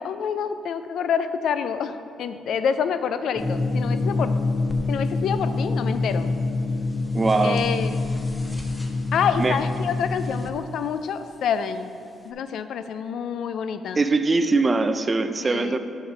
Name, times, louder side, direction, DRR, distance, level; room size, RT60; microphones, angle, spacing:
voice 1, 0.0-4.3 4.9-6.3 7.4-8.0 9.1-11.9 12.2-14.0 15.4-15.8, left 7 dB, 70° left, 11 dB, 0.3 m, -27 dB
sound 1, 3.4-10.5, left 3 dB, 15° left, 0.6 m, -26 dB
voice 2, 7.1-7.7 9.4-9.6 14.0-15.8, right 3 dB, 30° right, 9 dB, 0.4 m, -21 dB
6.3 x 5.3 x 4.9 m, 2.5 s
cardioid pair, 90°, 0 cm